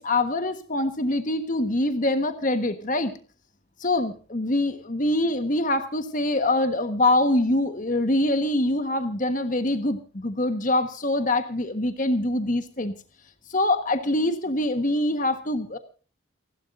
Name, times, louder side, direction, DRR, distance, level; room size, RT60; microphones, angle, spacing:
voice 1, 0.0-3.1 3.8-12.9 13.5-15.8, left 1 dB, 40° left, 8 dB, 1.4 m, -24 dB
29.0 x 12.0 x 2.6 m, 0.38 s
head